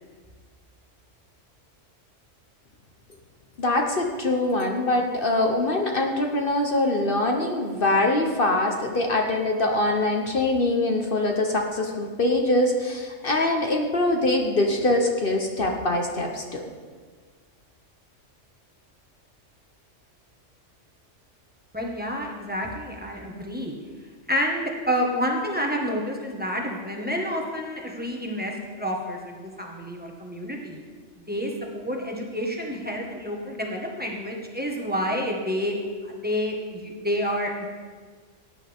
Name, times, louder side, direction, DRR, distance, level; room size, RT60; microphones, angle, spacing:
voice 1, 3.6-16.6, left 2 dB, 45° left, 2 dB, 1.2 m, -23 dB
voice 2, 21.7-23.8 24.3-30.8 31.3-35.8 36.1-37.7, equal, 10° right, -1 dB, 1.5 m, -29 dB
17.0 x 9.9 x 3.6 m, 1.5 s
omnidirectional pair, 1.3 m